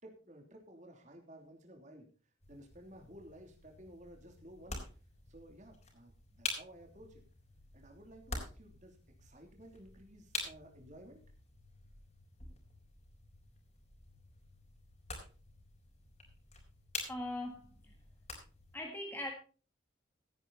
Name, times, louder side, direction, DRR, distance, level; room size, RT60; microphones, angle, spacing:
voice 1, 0.0-2.1 2.5-4.8 5.3-7.2 7.7-11.2, right 1 dB, 40° right, 3 dB, 3.1 m, -55 dB
sound 1, 2.4-18.8, left 3 dB, 35° left, 4.0 m, -47 dB
voice 2, 17.1-17.9 18.7-19.3, left 1 dB, 10° left, 2 dB, 1.4 m, -41 dB
16.5 x 9.5 x 4.1 m, 0.37 s
head